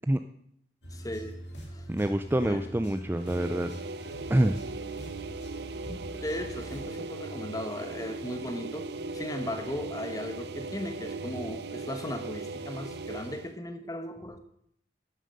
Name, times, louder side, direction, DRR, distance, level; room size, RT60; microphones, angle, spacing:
sound 1, 0.8-6.9, right 1 dB, 80° left, 3.0 m, -43 dB
voice 1, 0.9-1.4 1.7-1.9 2.4-2.6 5.9-14.4, left 1 dB, 20° left, 7 dB, 1.0 m, -37 dB
voice 2, 1.9-3.7 4.3-4.5, right 1 dB, 10° right, 9 dB, 0.3 m, -26 dB
sound 2, 3.1-13.5, right 3 dB, 65° right, 0.6 m, -38 dB
10.5 x 7.5 x 6.5 m, 0.71 s
head